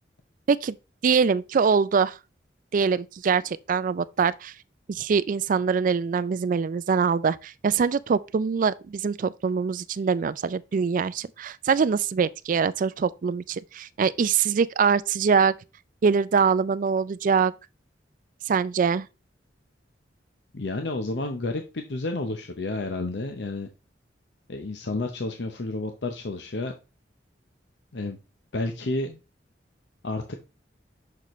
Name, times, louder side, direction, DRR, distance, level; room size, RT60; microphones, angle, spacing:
voice 1, 1.0-2.2 2.7-4.5 4.9-15.5 16.0-17.5 18.5-19.1, right 6 dB, 45° right, 0.3 m, -23 dB
voice 2, 20.5-23.7 24.5-26.7 27.9-28.2 28.5-29.2 30.0-30.3, left 2 dB, 70° left, 0.8 m, -30 dB
6.7 x 6.3 x 3.1 m
head